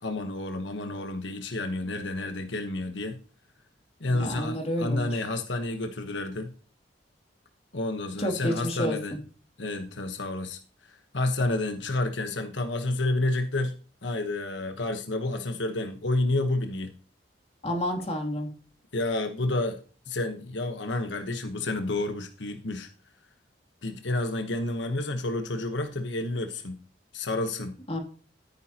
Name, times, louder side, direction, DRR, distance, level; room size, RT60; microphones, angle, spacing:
voice 1, 0.0-3.2 4.0-6.5 7.7-9.2 9.6-13.7 14.0-16.9 18.9-19.8 20.1-22.9 23.8-26.8 27.1-27.7, left 2 dB, 80° left, 6 dB, 1.2 m, -30 dB
voice 2, 4.1-5.1 8.2-9.2 17.6-18.5 27.9-28.0, equal, 35° left, 2 dB, 2.8 m, -30 dB
14.0 x 9.3 x 2.9 m, 0.40 s
head